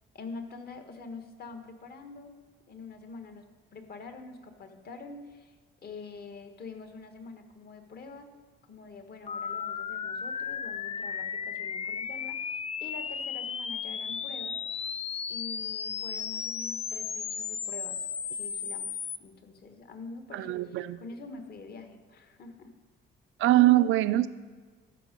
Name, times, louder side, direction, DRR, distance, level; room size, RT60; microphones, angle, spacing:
voice 1, 0.1-2.4 2.7-5.5 5.8-8.3 8.7-14.6 15.3-18.0 18.3-22.7, left 4 dB, 50° left, 6 dB, 1.3 m, -45 dB
sound 1, 9.3-19.2, left 7 dB, 30° left, 0.4 m, -35 dB
voice 2, 20.3-21.0 23.4-24.3, right 15 dB, 80° right, 14 dB, 0.4 m, -22 dB
13.0 x 5.2 x 5.2 m, 1.5 s
cardioid pair, 95°, 20 cm